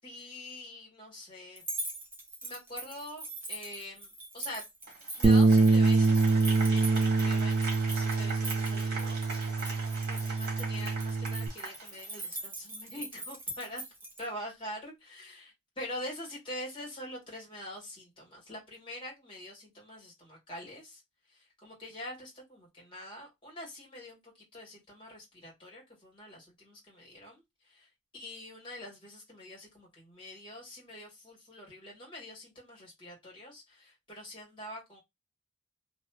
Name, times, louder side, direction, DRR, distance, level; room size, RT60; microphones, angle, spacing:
voice 1, 0.0-1.6 2.4-4.6 5.2-9.7 10.1-13.8 14.2-21.0 21.3-24.2 24.5-27.9 28.1-35.0, left 1 dB, 25° left, 1.7 m, -45 dB
sound 1, 1.6-14.2, right 2 dB, 10° right, 0.7 m, -42 dB
Applause, 4.9-12.4, right 3 dB, 50° right, 1.5 m, -41 dB
Bass guitar, 5.2-11.5, right 3 dB, 30° right, 0.3 m, -25 dB
3.0 x 2.6 x 2.3 m
head